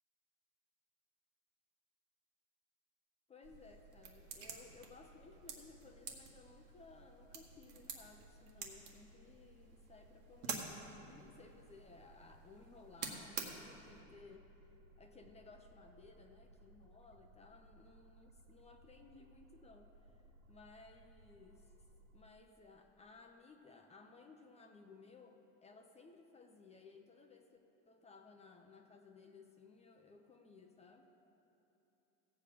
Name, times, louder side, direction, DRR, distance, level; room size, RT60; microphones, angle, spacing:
voice 1, 3.3-14.5 15.0-20.2 20.5-21.7 22.1-27.5 27.9-31.1, left 4 dB, 15° left, 4 dB, 0.6 m, -59 dB
sound 1, 3.4-22.3, right 1 dB, 45° right, 0.5 m, -63 dB
sound 2, 3.4-14.0, right 6 dB, 85° right, 1.7 m, -50 dB
16.5 x 8.2 x 5.0 m, 3.0 s
supercardioid pair, 135°, 38 cm